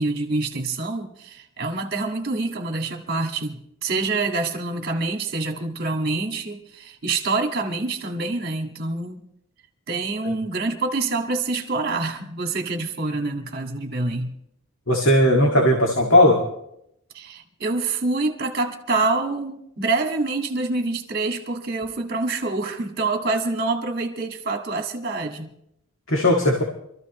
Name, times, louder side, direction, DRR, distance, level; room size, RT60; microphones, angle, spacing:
voice 1, 0.0-9.2 9.9-14.3 17.1-25.5, right 3 dB, 45° right, 3 dB, 1.8 m, -26 dB
voice 2, 14.9-16.4 26.1-26.6, left 1 dB, 70° left, 0 dB, 2.1 m, -17 dB
26.0 x 14.0 x 3.1 m, 0.77 s
head